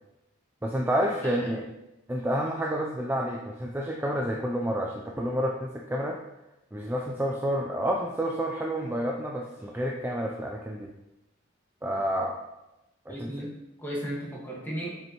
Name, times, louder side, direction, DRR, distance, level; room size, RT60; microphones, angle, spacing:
voice 1, 0.6-1.6 2.1-6.2 6.7-10.9 11.8-12.3 13.1-13.5, equal, 10° right, 0 dB, 0.4 m, -29 dB
voice 2, 13.1-15.0, right 1 dB, 10° left, -4 dB, 1.6 m, -35 dB
7.5 x 5.3 x 3.0 m, 0.94 s
head